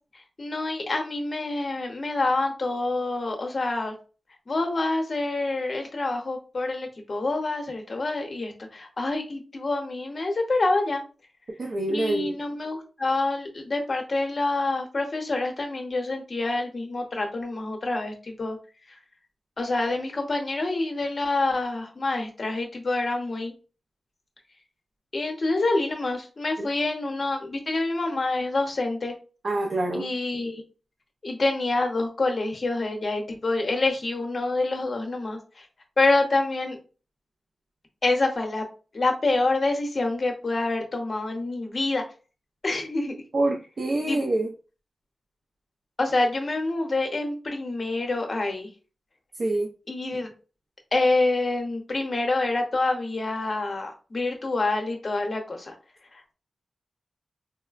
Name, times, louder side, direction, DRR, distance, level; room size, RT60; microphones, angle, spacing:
voice 1, 0.4-3.9 4.5-11.0 11.9-18.6 18.9-19.0 19.6-23.5 25.1-29.1 29.9-30.6 31.2-35.7 36.0-36.8 38.0-38.6 38.9-42.0 42.6-43.1 44.0-44.2 46.0-48.7 49.9-50.3 50.9-55.7 56.1-56.3, left 2 dB, 40° left, 3 dB, 0.7 m, -27 dB
voice 2, 11.6-12.3 26.6-26.7 29.4-30.1 43.3-44.5 49.4-49.7, right 2 dB, 50° right, 1 dB, 0.4 m, -26 dB
3.8 x 2.1 x 2.4 m, 0.35 s
wide cardioid pair, 125°, 0 cm